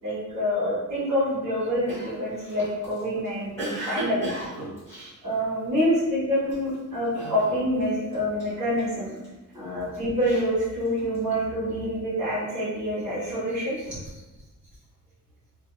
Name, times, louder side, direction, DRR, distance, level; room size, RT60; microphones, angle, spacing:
voice 1, 0.0-4.3 5.2-9.2 9.5-14.0, equal, 60° right, -12 dB, 1.3 m, -26 dB
Cough, 1.9-6.0 6.4-6.7 7.1-7.9 8.1-9.3 9.8-11.3, right 1 dB, 10° left, 0.8 m, -36 dB
2.6 x 2.2 x 2.2 m, 1.1 s
cardioid pair, 170°, 32 cm